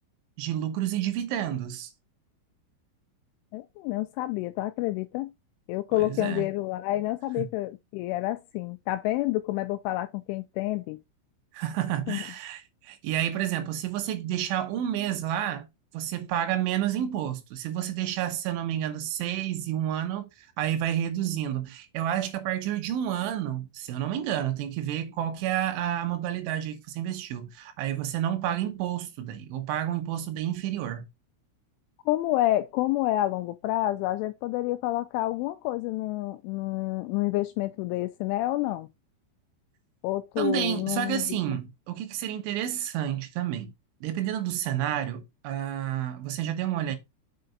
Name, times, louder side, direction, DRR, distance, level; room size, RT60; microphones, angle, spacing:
voice 1, 0.4-1.9 5.9-6.5 11.5-15.7 15.9-31.1 40.4-43.7 44.0-47.0, right 11 dB, 75° right, 3.2 m, -30 dB
voice 2, 3.5-5.3 5.7-11.0 12.1-12.2 32.1-38.9 40.0-41.2, left 16 dB, 85° left, 2.7 m, -28 dB
6.6 x 5.6 x 3.9 m
omnidirectional pair, 5.9 m